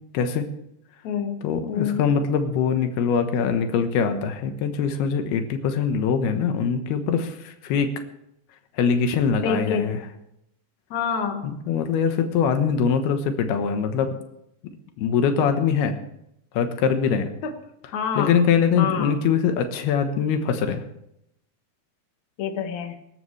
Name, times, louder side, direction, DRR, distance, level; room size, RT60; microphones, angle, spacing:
voice 1, 0.1-0.5 1.4-7.9 8.8-10.0 11.7-14.1 15.0-16.0 16.5-17.3 18.2-20.8, left 6 dB, 90° left, 7 dB, 3.2 m, -23 dB
voice 2, 1.0-1.4 1.7-2.0 9.4-10.0 10.9-11.5 17.4-17.5 17.9-18.4 18.7-19.2 22.4-23.0, left 6 dB, 55° left, 4 dB, 2.6 m, -27 dB
24.5 x 13.0 x 3.3 m, 0.80 s
omnidirectional pair, 4.4 m